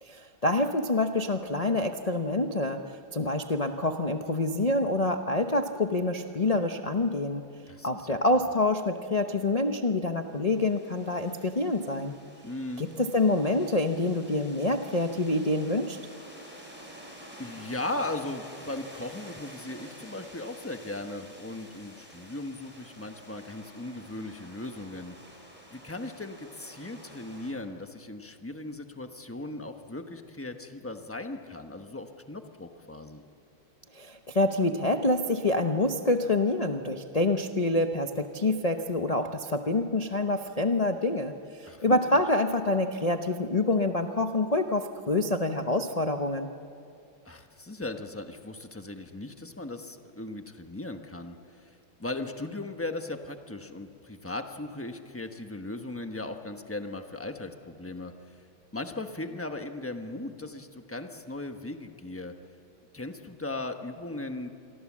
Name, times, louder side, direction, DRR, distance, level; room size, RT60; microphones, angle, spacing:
voice 1, 0.0-7.4 7.8-12.1 12.8-16.0 33.9-46.5, left 2 dB, 80° left, 5 dB, 0.3 m, -27 dB
voice 2, 7.7-8.4 12.4-12.9 17.4-25.2 25.7-33.2 41.6-42.2 47.2-51.7 52.0-58.4 58.7-62.3 62.9-64.5, left 2 dB, 10° left, 6 dB, 0.7 m, -38 dB
sound 1, 10.1-27.5, equal, 5° right, 4.6 m, -49 dB
27.0 x 23.5 x 7.4 m, 2.5 s
omnidirectional pair, 2.2 m